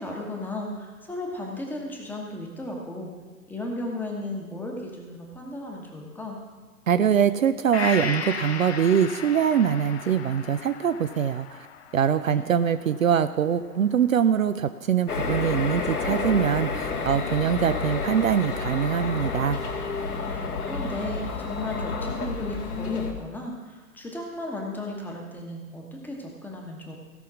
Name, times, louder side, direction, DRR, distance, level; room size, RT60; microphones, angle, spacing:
voice 1, 0.0-3.1 3.5-6.4 12.2-12.4 20.2-26.9, left 1 dB, 5° left, 0 dB, 1.1 m, -35 dB
voice 2, 6.9-11.6 11.9-19.6, right 8 dB, 60° right, 11 dB, 0.6 m, -23 dB
Gong, 7.7-15.4 15.8-15.9, left 6 dB, 45° left, 0.9 m, -37 dB
sound 1, 15.1-23.1, left 4 dB, 70° left, 2.2 m, -30 dB
16.0 x 5.6 x 6.2 m, 1.3 s
figure-of-eight pair, 120°, 46 cm